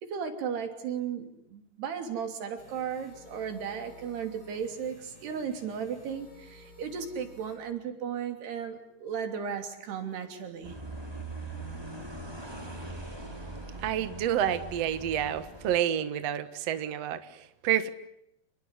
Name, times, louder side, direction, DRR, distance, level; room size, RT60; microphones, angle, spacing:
voice 1, 0.0-10.8, right 7 dB, 80° right, 5.2 m, -35 dB
sound 1, 2.6-7.6, left 1 dB, 25° left, 8.6 m, -54 dB
sound 2, 10.6-15.8, right 2 dB, 5° right, 3.8 m, -41 dB
voice 2, 13.8-17.9, right 10 dB, 55° right, 2.0 m, -29 dB
29.0 x 21.0 x 9.7 m
omnidirectional pair, 4.7 m